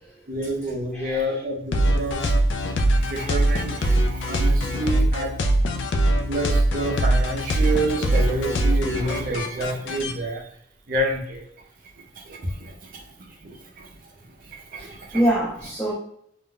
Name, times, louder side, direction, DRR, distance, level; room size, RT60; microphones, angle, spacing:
voice 1, 0.3-2.2 2.9-5.3 6.3-10.4 10.9-11.4 12.2-13.0 13.4-13.9 14.4-15.2, right 1 dB, 45° right, 1 dB, 0.6 m, -28 dB
voice 2, 0.9-1.4 14.8-15.9, right 1 dB, 5° left, -5 dB, 0.5 m, -25 dB
sound 1, 1.7-10.1, right 1 dB, 65° left, 0.4 m, -22 dB
2.5 x 2.1 x 3.7 m, 0.70 s
head